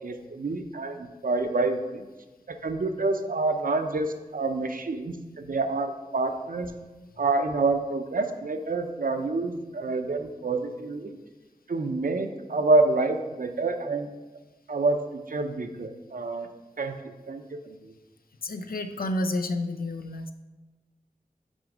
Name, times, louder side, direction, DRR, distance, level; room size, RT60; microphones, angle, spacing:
voice 1, 0.0-2.0 2.5-6.7 7.2-11.2 11.7-14.1 14.7-16.5 16.8-17.0 17.3-17.9, right 3 dB, 70° right, 6 dB, 0.6 m, -27 dB
voice 2, 18.4-20.3, left 1 dB, 85° left, 8 dB, 0.5 m, -30 dB
6.2 x 5.1 x 5.0 m, 1.2 s
wide cardioid pair, 60°, 15 cm